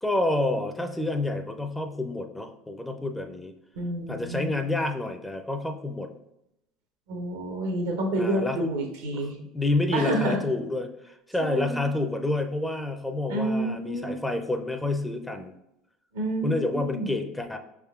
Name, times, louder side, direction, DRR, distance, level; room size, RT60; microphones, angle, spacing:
voice 1, 0.0-3.5 4.1-6.1 8.2-8.6 9.1-15.5 16.4-17.6, left 2 dB, 10° left, 6 dB, 0.5 m, -29 dB
voice 2, 3.7-4.5 7.1-9.3 9.9-10.4 11.4-11.9 13.3-14.1 16.1-17.1, right 1 dB, 85° right, 3 dB, 0.8 m, -29 dB
5.2 x 3.6 x 2.4 m, 0.85 s
hypercardioid pair, 80°, 0 cm